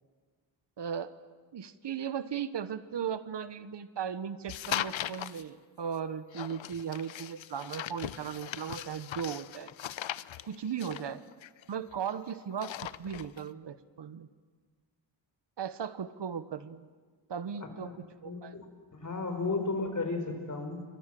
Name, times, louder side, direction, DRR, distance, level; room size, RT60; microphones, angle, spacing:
voice 1, 0.8-1.1 1.5-9.7 10.5-11.2 11.7-12.7 13.0-14.3 15.6-16.9 17.3-17.9 18.2-18.5, right 8 dB, 65° right, 13 dB, 1.1 m, -37 dB
sound 1, 4.5-5.4 6.3-12.1 12.4-13.4, left 11 dB, 90° left, 0.8 m, -39 dB
voice 2, 17.6-17.9 18.2-18.7 18.9-20.8, left 3 dB, 40° left, 5 dB, 4.7 m, -34 dB
28.5 x 24.5 x 7.7 m, 1.5 s
wide cardioid pair, 135°, 45 cm